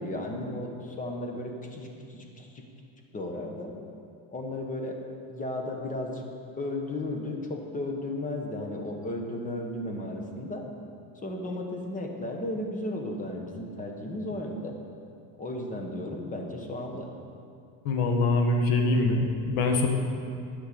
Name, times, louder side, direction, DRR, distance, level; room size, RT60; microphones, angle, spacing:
voice 1, 0.0-2.6 3.1-3.7 4.3-5.0 5.3-6.3 6.6-10.6 11.2-14.7 15.4-17.1, left 1 dB, 20° left, 2 dB, 1.3 m, -34 dB
voice 2, 17.8-19.9, left 2 dB, 65° left, 3 dB, 1.7 m, -24 dB
11.5 x 5.9 x 8.5 m, 2.4 s
cardioid pair, 150°, 39 cm